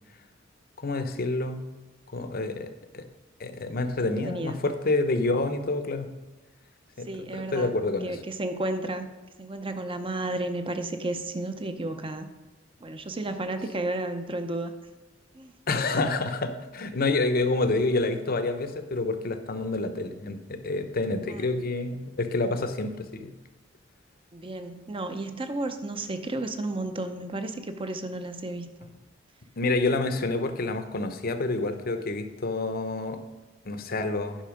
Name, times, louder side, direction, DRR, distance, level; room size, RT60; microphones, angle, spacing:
voice 1, 0.8-1.6 2.1-2.7 2.9-3.0 3.4-6.1 7.0-8.2 15.7-23.3 29.6-33.2 33.7-34.4, left 2 dB, 50° left, 9 dB, 0.7 m, -28 dB
voice 2, 4.0-4.6 7.0-9.1 9.4-12.3 12.8-14.7 15.3-15.5 21.3-21.5 24.3-28.9, right 2 dB, 25° right, 8 dB, 0.7 m, -33 dB
10.0 x 5.5 x 5.1 m, 1.2 s
head